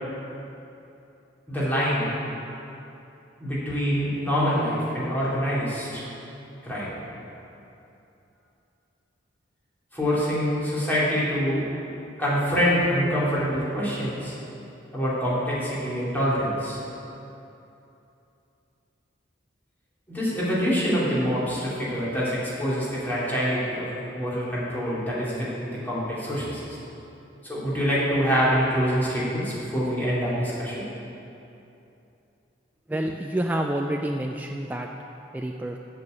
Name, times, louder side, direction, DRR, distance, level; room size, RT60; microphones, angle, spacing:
voice 1, 1.5-2.2 3.4-6.0 6.6-6.9 9.9-11.6 12.2-14.3 14.9-16.8 20.1-23.9 24.1-26.6 27.4-30.8, equal, 10° left, -9 dB, 2.8 m, -25 dB
voice 2, 32.9-34.9 35.3-35.8, right 1 dB, 10° right, 1 dB, 0.3 m, -28 dB
8.0 x 7.2 x 8.1 m, 2.8 s
head